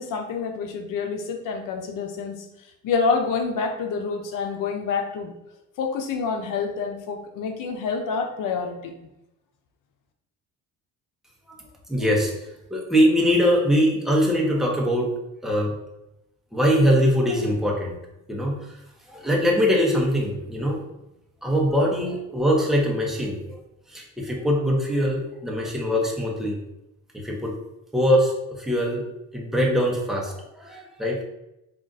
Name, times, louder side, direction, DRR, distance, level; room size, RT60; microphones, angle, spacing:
voice 1, 0.0-2.5 2.8-5.3 5.8-8.9, left 5 dB, 70° left, 4 dB, 0.7 m, -27 dB
voice 2, 11.9-15.1 15.4-15.8 16.5-18.0 18.3-18.8 19.1-20.8 21.4-23.6 23.9-26.6 27.1-27.5 27.9-29.0 29.3-31.3, equal, ahead, -2 dB, 0.8 m, -22 dB
3.7 x 2.4 x 3.9 m, 0.89 s
cardioid pair, 120°, 34 cm